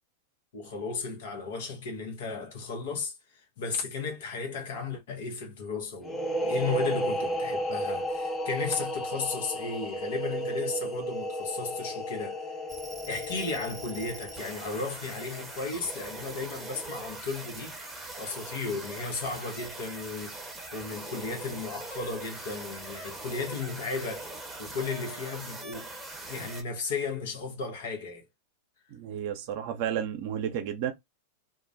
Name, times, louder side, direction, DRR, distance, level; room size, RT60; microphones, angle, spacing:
voice 1, 0.5-12.4 13.1-17.8 18.2-20.4 20.7-24.3 24.6-25.9 26.3-28.3, left 4 dB, 65° left, 0.8 m, -35 dB
sound 1, 6.0-15.5, equal, 15° left, 0.6 m, -33 dB
sound 2, 12.7-26.6, right 2 dB, 5° right, 0.9 m, -42 dB
voice 2, 28.9-30.9, right 9 dB, 50° right, 0.5 m, -32 dB
2.3 x 2.1 x 2.5 m
figure-of-eight pair, 95°, 0 cm